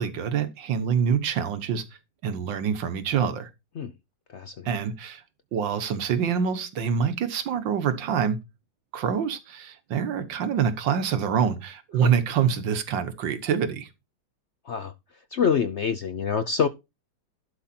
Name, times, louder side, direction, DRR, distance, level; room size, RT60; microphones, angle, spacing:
voice 1, 0.0-1.8 2.2-3.5 4.7-5.2 5.5-8.4 8.9-13.9, right 7 dB, 90° right, 1.9 m, -26 dB
voice 2, 4.3-4.8 12.0-12.1 14.6-14.9 15.3-16.7, left 6 dB, 65° left, 0.7 m, -26 dB
11.5 x 5.3 x 4.3 m
omnidirectional pair, 1.9 m